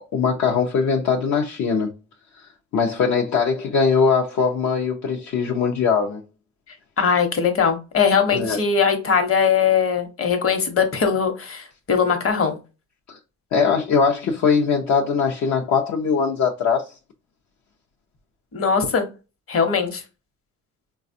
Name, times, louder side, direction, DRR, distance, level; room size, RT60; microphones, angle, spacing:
voice 1, 0.1-1.9 2.7-6.2 8.3-8.6 13.1-13.2 13.5-16.9, left 5 dB, 65° left, 0.7 m, -21 dB
voice 2, 7.0-12.6 18.5-19.0 19.5-20.0, left 6 dB, 45° left, 1.0 m, -20 dB
4.0 x 2.3 x 2.6 m
cardioid pair, 90°, 30 cm